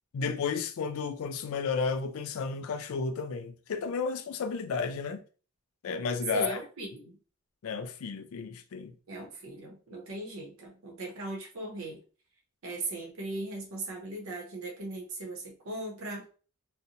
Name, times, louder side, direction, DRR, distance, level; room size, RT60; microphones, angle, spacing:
voice 1, 0.1-5.2 5.8-6.6 7.6-8.9, left 5 dB, 80° left, 0.4 m, -32 dB
voice 2, 6.3-7.1 9.1-12.0 12.6-16.2, right 2 dB, 80° right, 0.7 m, -38 dB
2.5 x 2.0 x 2.8 m
head